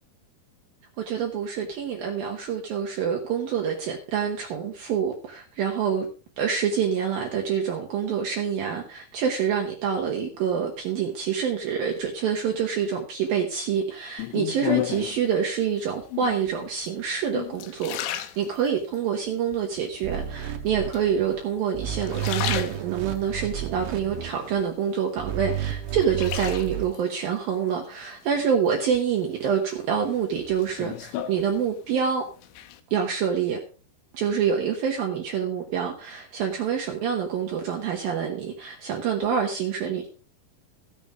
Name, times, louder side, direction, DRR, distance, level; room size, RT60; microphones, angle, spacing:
voice 1, 1.0-6.1 6.4-32.2 32.9-33.6 34.1-40.1, right 7 dB, 65° right, 2.7 m, -27 dB
sound 1, 14.2-15.3 16.0-16.5 17.1-19.0 19.5-20.1 20.9-21.6 21.9-23.3 23.8-25.0 25.4-27.0 28.4-29.0 29.4-32.0 32.3-32.8, left 13 dB, 85° left, 3.3 m, -33 dB
sound 2, 20.0-21.4 21.7-24.6 25.2-26.9, right 11 dB, 90° right, 3.3 m, -32 dB
15.5 x 7.1 x 4.8 m
omnidirectional pair, 5.2 m